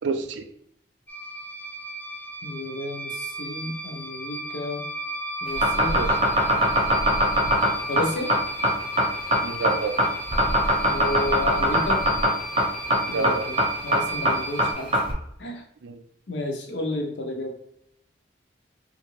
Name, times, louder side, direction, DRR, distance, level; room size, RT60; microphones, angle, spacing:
voice 1, 0.0-0.5 5.9-6.2 6.9-7.0 9.4-10.0 13.1-13.5 15.8-16.0, right 4 dB, 85° right, 8 dB, 0.4 m, -29 dB
sound 1, 1.1-14.7, right 1 dB, 10° left, 0.3 m, -35 dB
voice 2, 2.4-4.8 5.4-6.0 7.9-8.3 10.9-12.0 13.1-13.6 13.8-14.9 15.4-15.6 16.3-17.5, left 1 dB, 80° left, 2 dB, 0.7 m, -31 dB
sound 2, 5.5-15.1, equal, 30° right, 0.7 m, -21 dB
3.5 x 2.5 x 3.0 m, 0.74 s
head